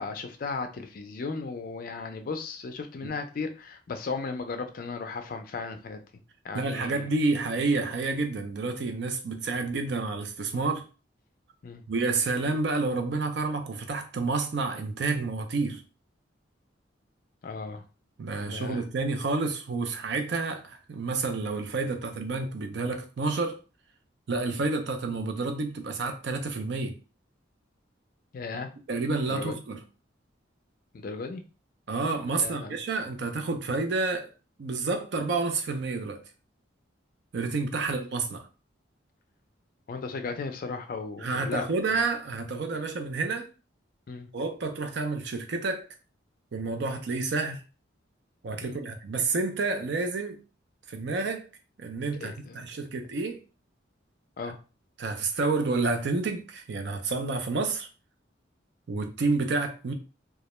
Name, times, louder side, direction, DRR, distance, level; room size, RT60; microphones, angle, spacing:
voice 1, 0.0-6.0 6.4-7.1 11.6-11.8 17.4-17.8 18.3-18.8 28.3-28.7 29.3-29.6 30.9-31.4 32.4-32.8 39.9-41.6 42.7-42.8 44.1-44.3 48.6-48.8 52.2-52.6 54.4-54.6, left 4 dB, 45° left, 0.4 m, -36 dB
voice 2, 6.5-10.9 11.9-15.8 18.2-23.6 24.3-27.0 28.9-29.8 31.9-34.3 34.6-36.2 37.3-38.4 41.2-43.5 44.3-45.9 46.5-47.6 48.4-50.4 50.9-51.5 51.8-53.4 55.0-57.9 58.9-59.9, right 3 dB, 60° right, 0.4 m, -29 dB
2.3 x 2.1 x 2.9 m
head